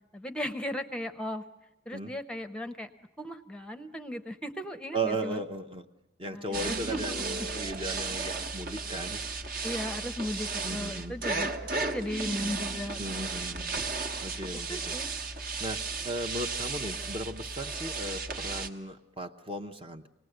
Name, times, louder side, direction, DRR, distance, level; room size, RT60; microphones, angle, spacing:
voice 1, 0.1-1.4 1.9-2.9 3.2-5.4 6.2-7.5 7.9-8.0 9.6-13.5 14.7-15.1, left 1 dB, 5° left, 9 dB, 0.8 m, -37 dB
voice 2, 4.9-5.8 6.2-9.2 10.6-11.1 13.0-13.7 14.2-15.0 15.6-15.8 16.0-20.0, right 2 dB, 25° right, 6 dB, 0.8 m, -36 dB
sound 1, 6.5-18.7, right 4 dB, 45° right, 1.2 m, -35 dB
sound 2, 6.5-8.9 11.3-14.7, right 1 dB, 80° right, 1.2 m, -43 dB
25.5 x 19.0 x 7.9 m, 0.96 s
head